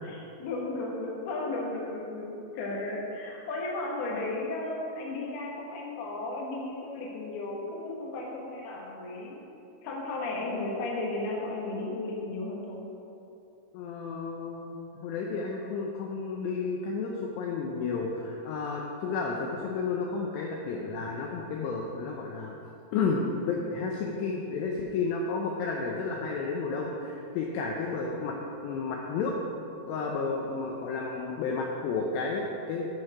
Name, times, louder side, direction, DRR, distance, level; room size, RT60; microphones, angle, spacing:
voice 1, 0.0-9.4 9.8-12.8, left 2 dB, 65° left, -2 dB, 2.8 m, -34 dB
voice 2, 13.7-22.6 22.9-28.4 28.6-29.3 29.9-32.9, left 4 dB, 90° left, 0 dB, 2.4 m, -32 dB
13.5 x 4.6 x 4.8 m, 2.8 s
omnidirectional pair, 5.7 m